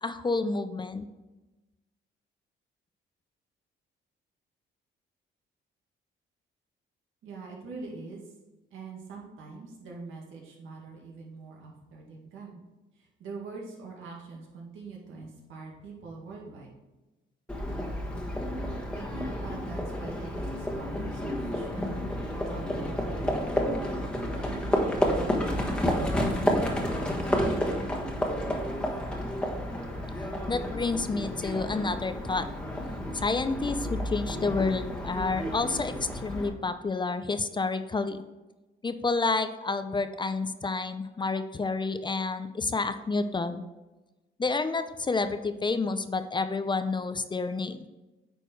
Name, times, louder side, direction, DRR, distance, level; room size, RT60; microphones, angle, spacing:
voice 1, 0.0-1.0 30.5-32.5 33.1-38.2 38.8-43.6 44.4-47.9, left 3 dB, 25° left, 10 dB, 0.5 m, -29 dB
voice 2, 7.2-8.3 8.7-12.6 13.0-16.7 18.9-22.0 22.3-23.8 24.3-26.8, right 3 dB, 85° right, -1 dB, 2.0 m, -44 dB
Livestock farm animals working animals, 17.5-36.5, equal, 5° left, 1.4 m, -30 dB
9.2 x 4.4 x 4.5 m, 1.1 s
cardioid pair, 90°, 20 cm